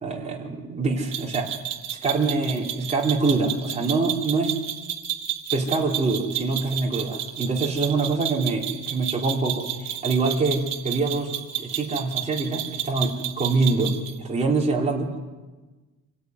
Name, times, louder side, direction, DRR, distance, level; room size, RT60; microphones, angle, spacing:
voice 1, 0.0-1.5 2.0-4.6 5.5-11.3 11.6-15.1, right 3 dB, 20° right, -2 dB, 3.9 m, -25 dB
sound 1, 1.1-14.2, right 11 dB, 65° right, 2.4 m, -32 dB
27.5 x 18.0 x 9.6 m, 1.2 s
cardioid pair, 175°, 35 cm